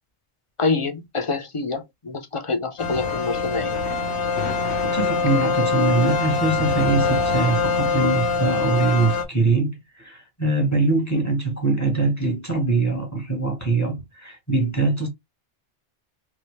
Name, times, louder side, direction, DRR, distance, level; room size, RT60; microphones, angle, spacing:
voice 1, 0.6-3.8, left 3 dB, 40° left, 0.5 m, -26 dB
sound 1, 2.8-9.2, left 4 dB, 75° left, 1.0 m, -23 dB
voice 2, 4.8-15.1, right 3 dB, 15° left, 1.2 m, -23 dB
3.1 x 2.8 x 3.0 m
omnidirectional pair, 1.2 m